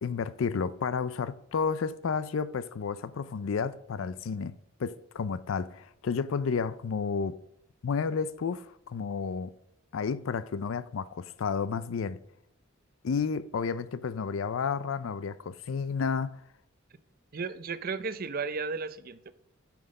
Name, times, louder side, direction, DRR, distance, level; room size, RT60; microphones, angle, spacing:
voice 1, 0.0-7.4 7.8-9.5 9.9-12.2 13.0-16.4, left 5 dB, 80° left, 0.4 m, -31 dB
voice 2, 17.3-19.3, right 4 dB, 45° right, 0.6 m, -34 dB
11.5 x 6.0 x 5.2 m
head